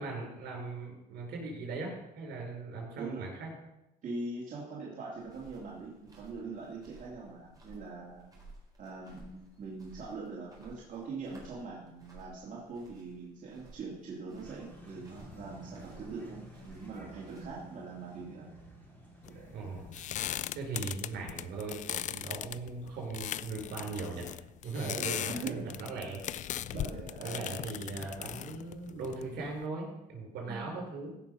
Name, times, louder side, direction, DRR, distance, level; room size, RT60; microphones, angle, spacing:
voice 1, 0.0-3.5 19.5-20.0 20.5-24.3 24.6-26.2 26.7-26.8 27.2-31.2, right 3 dB, 75° right, -1 dB, 5.4 m, -39 dB
voice 2, 4.0-8.2 8.8-18.5 19.3-19.5 20.2-20.4 24.8-25.7 26.7-27.5 30.5-30.9, right 3 dB, 50° right, -5 dB, 2.8 m, -42 dB
sound 1, 5.2-17.5, right 2 dB, 20° right, 4.3 m, -57 dB
sound 2, 14.4-20.3, equal, 10° left, 4.0 m, -52 dB
sound 3, 19.3-29.6, left 11 dB, 45° left, 0.4 m, -39 dB
16.5 x 6.0 x 5.6 m, 0.91 s
cardioid pair, 110°, 17 cm